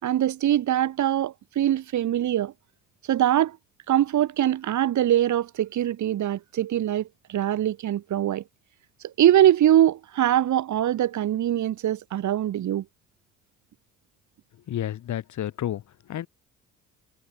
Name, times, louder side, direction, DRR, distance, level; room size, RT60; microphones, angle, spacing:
voice 1, 0.0-2.5 3.1-3.6 3.9-8.4 9.0-12.8, right 12 dB, 60° right, 2.6 m, -23 dB
voice 2, 14.7-16.3, left 11 dB, 60° left, 3.8 m, -31 dB
hypercardioid pair, 60°, 34 cm